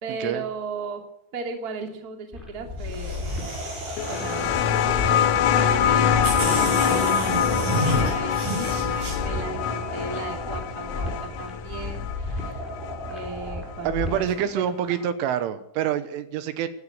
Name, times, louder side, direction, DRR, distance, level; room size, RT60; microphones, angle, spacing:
voice 1, 0.0-1.0 1.3-3.7 4.0-12.7 13.0-15.0, right 3 dB, 30° right, 4 dB, 1.8 m, -36 dB
sound 1, 2.3-14.3, left 2 dB, ahead, 5.9 m, -34 dB
sound 2, 2.8-5.2 5.8-5.9 6.2-9.2, right 2 dB, 50° right, 9.2 m, -30 dB
sound 3, 4.0-13.2 14.4-14.5, left 9 dB, 85° left, 3.9 m, -24 dB
voice 2, 13.8-16.7, right 10 dB, 80° right, 11 dB, 3.3 m, -26 dB
17.0 x 12.0 x 6.8 m, 0.80 s
omnidirectional pair, 5.9 m